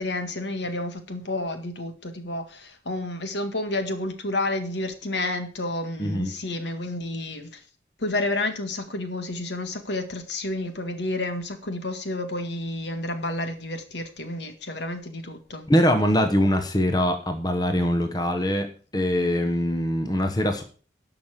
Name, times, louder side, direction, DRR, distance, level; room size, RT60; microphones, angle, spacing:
voice 1, 0.0-7.5 8.0-15.7, left 2 dB, 70° left, 7 dB, 1.9 m, -30 dB
voice 2, 6.0-6.3 15.7-20.6, equal, 20° left, 6 dB, 1.0 m, -23 dB
11.5 x 5.9 x 7.3 m, 0.41 s
head